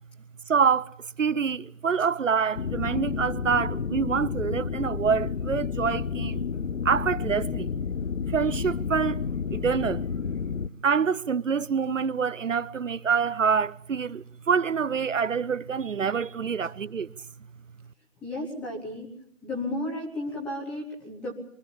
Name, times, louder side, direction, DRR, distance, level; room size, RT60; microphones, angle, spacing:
voice 1, 0.5-6.4 6.8-7.7 8.3-9.3 9.5-10.1 10.8-17.1, right 6 dB, 70° right, 0.8 m, -26 dB
sound 1, 2.6-10.7, left 6 dB, 65° left, 0.9 m, -30 dB
voice 2, 18.2-19.1 19.4-21.3, left 1 dB, 5° left, 1.0 m, -33 dB
24.0 x 15.5 x 8.7 m
figure-of-eight pair, 155°, 40 cm